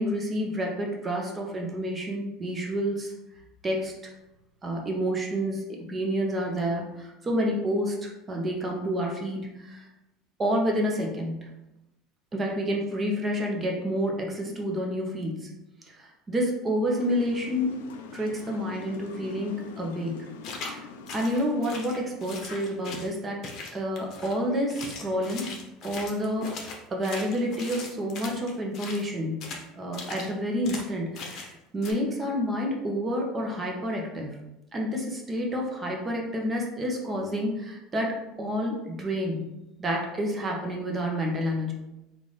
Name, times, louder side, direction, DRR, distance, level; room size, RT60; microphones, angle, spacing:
voice 1, 0.0-3.1 3.6-4.1 4.6-5.6 5.9-9.8 10.4-11.5 12.3-15.5 15.9-17.8 18.1-20.3 20.6-20.8 21.1-25.5 25.8-29.4 29.8-34.4 34.7-39.5 39.8-41.7, equal, 25° right, 0 dB, 0.9 m, -29 dB
sound 1, 17.0-22.5, left 5 dB, 90° left, 0.4 m, -44 dB
sound 2, 20.4-20.8 21.1-23.1 23.4-24.4 24.7-29.1 29.4-29.6 29.9-30.3 30.6-30.9 31.1-31.5 31.8-31.9, left 4 dB, 50° left, 0.8 m, -39 dB
3.8 x 2.5 x 3.3 m, 0.94 s
supercardioid pair, 105°, 0 cm